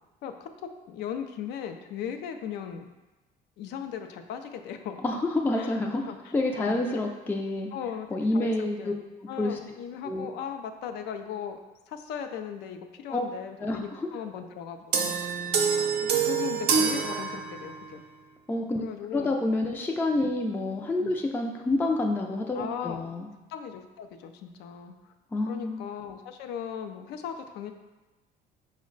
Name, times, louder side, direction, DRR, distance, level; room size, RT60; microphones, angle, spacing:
voice 1, 0.2-2.9 3.6-5.0 5.6-5.7 6.0-7.1 7.7-8.1 8.3-9.0 9.3-11.6 11.9-15.5 15.8-18.0 18.8-19.4 21.0-21.2 22.5-23.0 23.5-24.9 25.5-27.7, left 8 dB, 85° left, 7 dB, 0.4 m, -38 dB
voice 2, 5.0-6.0 6.3-7.7 8.1-8.9 9.4-9.6 10.1-10.3 13.1-13.3 13.6-14.1 18.5-18.8 19.1-23.3 25.3-25.9, left 2 dB, 10° left, 1 dB, 0.3 m, -28 dB
sound 1, 14.9-17.9, right 6 dB, 75° right, 0.5 m, -26 dB
5.1 x 2.1 x 3.8 m, 1.1 s
cardioid pair, 110°, 17 cm